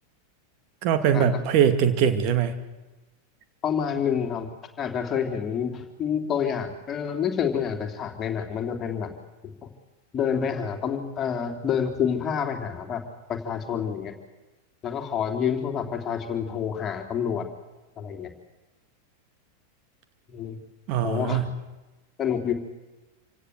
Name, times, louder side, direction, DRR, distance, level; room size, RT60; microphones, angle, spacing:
voice 1, 0.8-2.5 20.9-21.4, right 8 dB, 40° right, 9 dB, 2.3 m, -22 dB
voice 2, 3.6-4.5 4.8-9.1 9.4-9.7 10.1-13.0 13.3-14.1 14.8-17.4 18.0-18.3 20.3-20.6 21.0-21.4 22.2-22.5, left 7 dB, 25° left, 5 dB, 3.2 m, -28 dB
27.5 x 17.5 x 8.1 m, 1.1 s
figure-of-eight pair, 90°, 0 cm